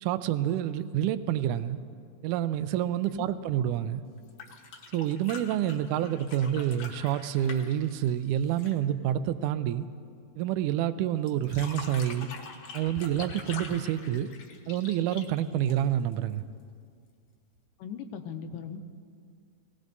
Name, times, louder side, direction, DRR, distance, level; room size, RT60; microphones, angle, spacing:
voice 1, 0.0-1.8 2.2-4.0 4.9-9.9 10.4-12.3 12.7-14.3 14.7-16.4, right 11 dB, 80° right, 12 dB, 1.8 m, -28 dB
sound 1, 4.2-8.9 11.3-16.1 17.6-17.7, left 4 dB, 60° left, 1.8 m, -44 dB
voice 2, 17.8-18.8, left 7 dB, 80° left, 7 dB, 2.3 m, -38 dB
21.0 x 17.5 x 2.7 m, 2.2 s
omnidirectional pair, 4.0 m